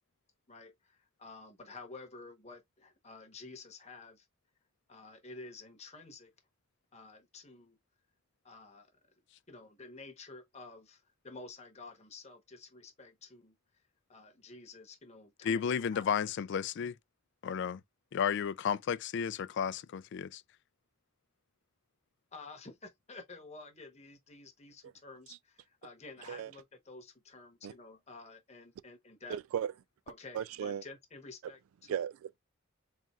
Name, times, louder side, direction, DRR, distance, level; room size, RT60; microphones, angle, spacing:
voice 1, 0.5-4.3 4.9-6.3 6.9-7.8 8.4-8.9 9.5-13.6 14.1-16.1 22.3-29.4 30.1-32.0, left 3 dB, 30° left, 1.0 m, -51 dB
voice 2, 15.4-16.9 17.4-17.8 18.1-20.4, left 7 dB, 55° left, 0.3 m, -33 dB
voice 3, 29.3-29.7 30.3-30.8 31.9-32.4, right 9 dB, 85° right, 0.3 m, -36 dB
4.2 x 3.7 x 2.3 m
head